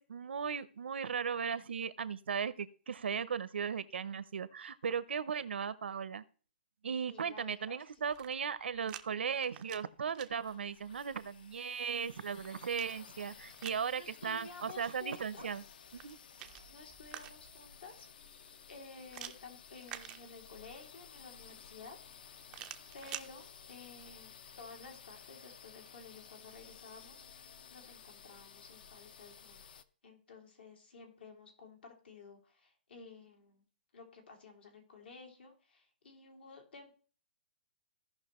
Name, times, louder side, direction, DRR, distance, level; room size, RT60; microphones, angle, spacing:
voice 1, 0.0-6.2 6.8-15.6 15.9-16.2, right 6 dB, 85° right, 16 dB, 0.7 m, -37 dB
voice 2, 7.1-8.0 14.0-15.7 16.7-18.1 18.7-22.5 22.9-29.7 30.0-33.6 33.9-36.9, left 4 dB, 70° left, 3 dB, 2.6 m, -53 dB
sound 1, 8.0-9.0 9.4-10.3 12.0-13.9 15.8-17.6 19.1-20.7 22.5-23.3, right 12 dB, 15° right, 0.4 m, -49 dB
sound 2, 10.3-29.8, left 7 dB, 55° left, 0.6 m, -55 dB
16.0 x 5.5 x 3.0 m, 0.40 s
hypercardioid pair, 170°, 6 cm